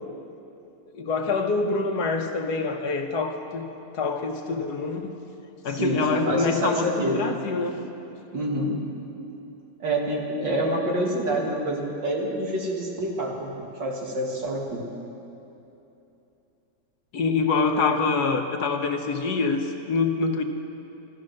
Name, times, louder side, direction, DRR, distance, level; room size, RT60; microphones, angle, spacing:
voice 1, 0.9-3.7 3.9-5.1 5.6-7.8 17.1-20.4, left 4 dB, 65° left, 5 dB, 1.4 m, -25 dB
voice 2, 5.7-7.2 8.3-8.8 9.8-13.5 13.8-14.9, right 1 dB, 80° right, -1 dB, 2.6 m, -27 dB
15.5 x 13.0 x 6.4 m, 2.9 s
omnidirectional pair, 1.9 m